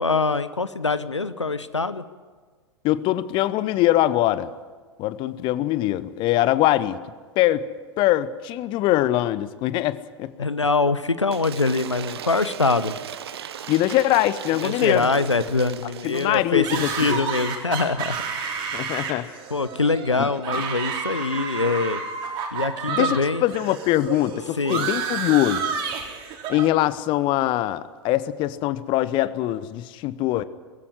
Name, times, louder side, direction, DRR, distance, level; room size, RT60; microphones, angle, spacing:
voice 1, 0.0-2.0 10.4-12.9 14.6-18.6 19.5-22.0 22.5-23.4 24.6-24.9, left 3 dB, 85° left, 14 dB, 0.9 m, -24 dB
voice 2, 2.8-4.5 5.0-7.0 7.4-7.7 8.0-10.5 13.7-15.1 16.0-17.2 18.7-19.3 20.2-20.3 22.9-25.7 26.5-30.4, left 14 dB, 35° left, 16 dB, 0.9 m, -22 dB
Cheering / Applause / Crowd, 11.3-16.5, right 9 dB, 60° right, 1.1 m, -37 dB
sound 1, 16.6-23.2 23.5-26.7, right 6 dB, 35° right, 4.3 m, -30 dB
20.5 x 16.0 x 9.7 m, 1.5 s
figure-of-eight pair, 95°, 15 cm